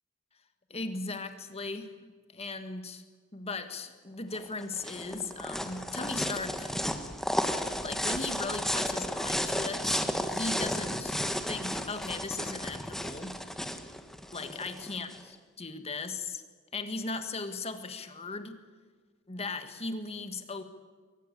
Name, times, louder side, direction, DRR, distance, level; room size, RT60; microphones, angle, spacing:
voice 1, 0.7-3.0 3.3-6.7 7.8-10.0 10.3-11.1 11.5-13.3 14.3-15.1 15.6-16.4 16.7-18.6 19.3-20.6, left 3 dB, 30° left, 8 dB, 1.8 m, -37 dB
sound 1, 4.3-15.2, equal, ahead, 1.4 m, -33 dB
23.0 x 18.5 x 8.3 m, 1.5 s
head